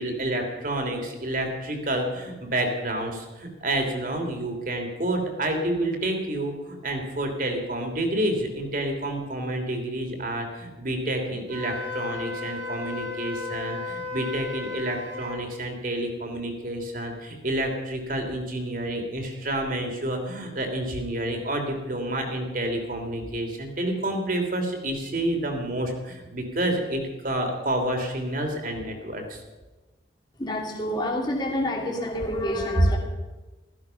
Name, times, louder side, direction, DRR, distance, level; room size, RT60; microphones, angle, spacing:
voice 1, 0.0-29.4, right 1 dB, 45° right, 3 dB, 3.0 m, -29 dB
Wind instrument woodwind instrument, 11.5-15.4, left 4 dB, 80° right, 4.1 m, -34 dB
voice 2, 30.3-33.0, left 1 dB, 20° left, 0 dB, 2.7 m, -28 dB
16.0 x 14.5 x 5.7 m, 1.2 s
head